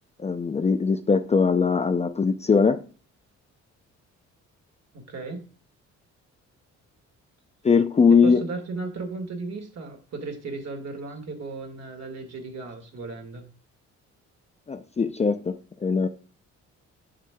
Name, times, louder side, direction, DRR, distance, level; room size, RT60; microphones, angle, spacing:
voice 1, 0.2-2.8 7.6-8.4 14.7-16.1, left 5 dB, 20° left, 0.4 m, -21 dB
voice 2, 4.9-5.4 8.1-13.4, right 3 dB, 60° right, 1.9 m, -35 dB
7.4 x 6.0 x 2.3 m
cardioid pair, 90°, 30 cm